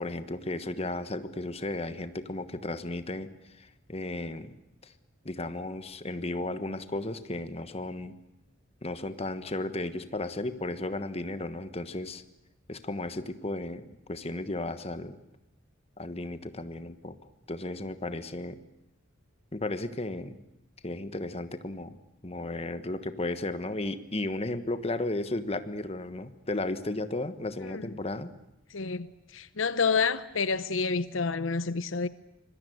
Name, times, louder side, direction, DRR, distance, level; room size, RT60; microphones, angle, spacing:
voice 1, 0.0-3.3 3.6-4.5 4.8-4.9 5.2-8.1 8.8-12.2 12.7-13.8 14.1-15.2 16.0-17.1 17.5-18.6 19.5-20.4 20.8-21.9 22.2-28.3, left 2 dB, 30° left, 1.3 m, -34 dB
voice 2, 27.6-27.9 28.7-29.1 29.3-32.1, left 5 dB, 80° left, 0.8 m, -28 dB
25.5 x 21.0 x 7.9 m
head